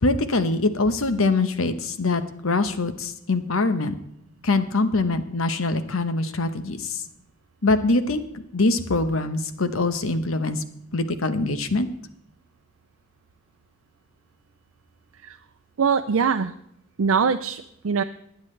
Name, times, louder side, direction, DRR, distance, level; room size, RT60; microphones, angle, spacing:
voice 1, 0.0-3.9 4.4-7.0 7.6-10.6 10.9-11.9, left 3 dB, 85° left, 10 dB, 1.0 m, -23 dB
voice 2, 15.8-16.5 17.0-18.0, right 6 dB, 85° right, 7 dB, 0.5 m, -22 dB
19.5 x 9.5 x 3.3 m, 0.76 s
head